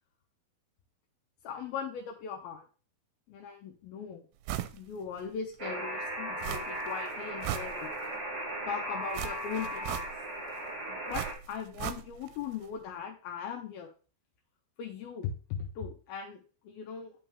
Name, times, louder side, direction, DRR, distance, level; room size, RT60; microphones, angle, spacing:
voice 1, 1.4-2.6 3.3-4.2 4.7-7.9 8.7-10.1 10.9-13.9 14.8-17.1, left 7 dB, 75° left, 2 dB, 2.7 m, -39 dB
sound 1, 4.5-4.8 5.2-5.3 6.4-6.9 7.2-8.2 9.1-10.4 11.1-12.4 12.6-12.7, right 12 dB, 80° right, 2.3 m, -37 dB
Alarm, 5.6-11.3, right 1 dB, 35° right, 2.6 m, -37 dB
9.7 x 5.5 x 3.4 m, 0.36 s
omnidirectional pair, 4.5 m